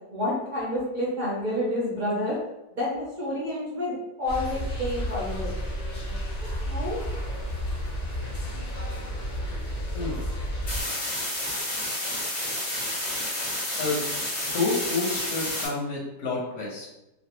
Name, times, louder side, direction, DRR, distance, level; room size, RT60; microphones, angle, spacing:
voice 1, 0.1-2.4 2.7-5.5 6.0-6.1 6.4-7.0, left 1 dB, 45° right, -6 dB, 0.6 m, -29 dB
sound 1, 4.3-10.8, equal, 80° left, 0.3 m, -31 dB
sound 2, 10.7-15.7, left 1 dB, 30° left, 0.8 m, -30 dB
voice 2, 13.8-14.1 14.4-16.9, left 3 dB, 55° left, -3 dB, 1.0 m, -29 dB
3.2 x 2.4 x 2.9 m, 0.92 s
omnidirectional pair, 1.8 m